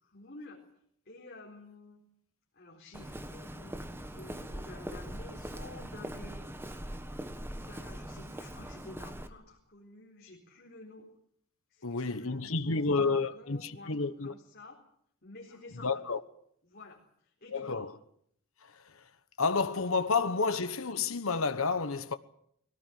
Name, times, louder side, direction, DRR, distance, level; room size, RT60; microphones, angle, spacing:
voice 1, 0.0-0.6 1.1-2.0 2.5-3.8 4.1-6.4 7.6-11.1 11.7-14.0 14.2-14.8 15.2-16.0 16.6-17.9, left 2 dB, 50° left, 4.2 m, -51 dB
Walk footsteps, 2.9-9.3, right 1 dB, 10° right, 1.5 m, -42 dB
voice 2, 11.8-14.3 15.8-16.2 17.5-18.0 18.6-19.1 19.4-22.2, left 4 dB, 70° left, 1.2 m, -30 dB
21.5 x 17.5 x 9.3 m
head